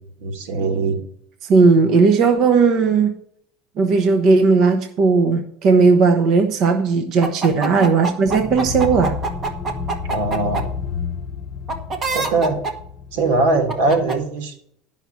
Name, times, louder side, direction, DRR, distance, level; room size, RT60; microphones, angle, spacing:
voice 1, 0.2-1.0 7.6-7.9 10.1-10.7 12.1-12.6 13.1-14.5, right 3 dB, 90° right, 4 dB, 2.6 m, -21 dB
voice 2, 1.4-3.1 3.8-9.2, right 4 dB, 40° right, 6 dB, 0.9 m, -16 dB
sound 1, 7.2-10.6 11.7-12.7 13.7-14.2, right 4 dB, 25° right, 1.3 m, -24 dB
sound 2, 8.3-14.2, left 6 dB, 25° left, 0.8 m, -31 dB
10.5 x 5.8 x 6.1 m, 0.67 s
cardioid pair, 165°, 0 cm